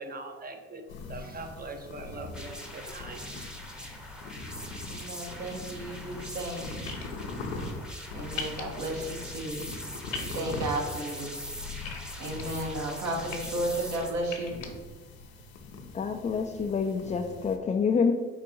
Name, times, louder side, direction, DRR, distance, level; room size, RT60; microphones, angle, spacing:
voice 1, 0.0-3.4, right 3 dB, 30° right, 6 dB, 0.8 m, -42 dB
sound 1, 0.9-17.6, left 3 dB, 90° left, 0.6 m, -42 dB
sound 2, 2.3-14.1, equal, 5° right, 0.9 m, -42 dB
voice 2, 4.9-6.8 8.1-9.7 10.2-11.3 12.2-14.6, right 1 dB, 65° right, -1 dB, 1.4 m, -33 dB
sound 3, 6.9-7.0 8.4-8.6 10.1-10.3 11.8-12.4 13.1-13.4 14.2-14.7, left 5 dB, 60° left, 1.0 m, -37 dB
voice 3, 15.9-18.1, left 5 dB, 25° left, 2 dB, 0.4 m, -27 dB
4.7 x 2.5 x 4.5 m, 1.4 s
supercardioid pair, 60°, 30 cm